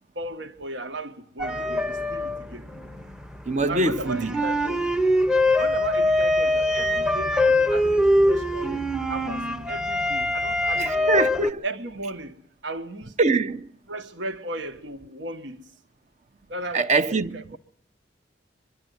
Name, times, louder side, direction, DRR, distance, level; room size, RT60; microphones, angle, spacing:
voice 1, 0.1-2.7 3.7-4.9 5.6-11.2 11.6-13.2 13.9-15.6 16.5-17.6, right 1 dB, 75° right, 1.6 m, -36 dB
sound 1, 1.4-11.5, left 1 dB, 5° right, 0.8 m, -23 dB
voice 2, 3.5-4.3 10.7-11.6 13.2-13.7 16.7-17.6, right 3 dB, 40° right, 0.8 m, -23 dB
23.5 x 11.5 x 9.4 m
head